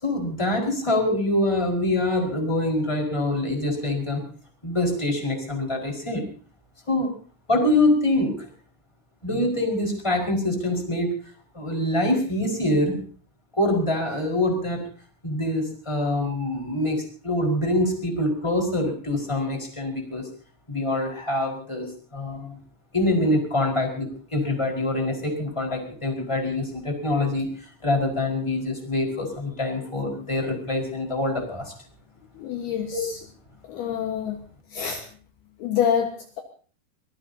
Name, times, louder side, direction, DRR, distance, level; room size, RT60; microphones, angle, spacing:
voice 1, 0.0-4.2 4.6-6.2 6.9-7.1 7.5-8.5 9.2-11.1 11.5-13.0 13.5-14.8 15.2-20.3 20.7-22.6 22.9-31.7 32.9-33.0, left 1 dB, 5° left, 1 dB, 4.3 m, -25 dB
voice 2, 32.4-33.1 33.7-34.4 34.7-35.0 35.6-36.4, left 8 dB, 65° left, 3 dB, 3.1 m, -26 dB
24.0 x 20.0 x 2.8 m, 0.41 s
omnidirectional pair, 5.2 m